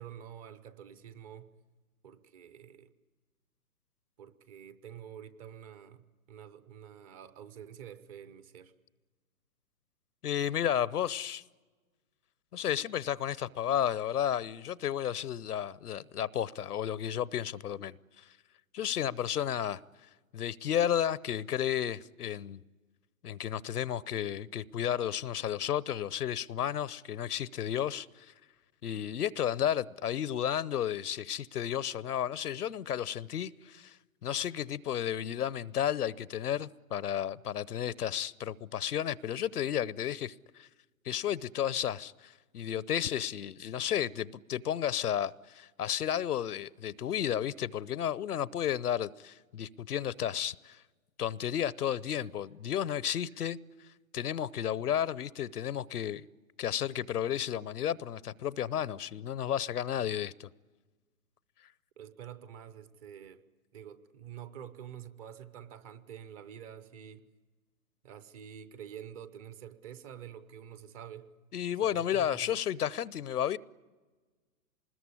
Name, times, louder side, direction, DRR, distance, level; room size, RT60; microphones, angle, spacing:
voice 1, 0.0-1.6 2.0-2.9 4.2-8.7 62.0-63.4 63.7-67.3 68.0-71.3 71.8-72.6, right 9 dB, 25° right, 0.8 m, -48 dB
voice 2, 10.2-11.4 12.5-18.0 18.7-19.8 20.3-22.6 23.2-28.3 28.8-34.0 34.2-40.3 40.6-40.7 41.0-50.8 51.2-53.6 54.1-56.2 56.6-60.5 71.5-73.6, left 10 dB, 75° left, 0.8 m, -32 dB
25.5 x 20.5 x 9.7 m
hypercardioid pair, 140°, 46 cm